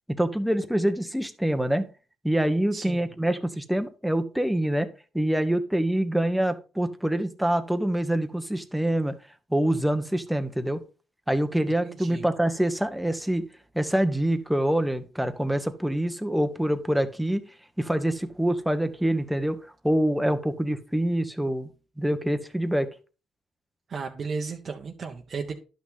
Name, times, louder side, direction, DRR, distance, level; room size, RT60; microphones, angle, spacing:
voice 1, 0.2-1.9 2.2-4.9 5.1-9.2 9.5-10.8 11.3-13.5 13.7-17.4 17.8-19.6 19.8-21.7 22.0-22.9, right 1 dB, ahead, 8 dB, 1.2 m, -25 dB
voice 2, 2.7-3.0 11.8-12.2 23.9-25.5, right 5 dB, 45° right, 1 dB, 1.1 m, -34 dB
11.0 x 6.0 x 3.8 m, 0.33 s
cardioid pair, 90°, 0 cm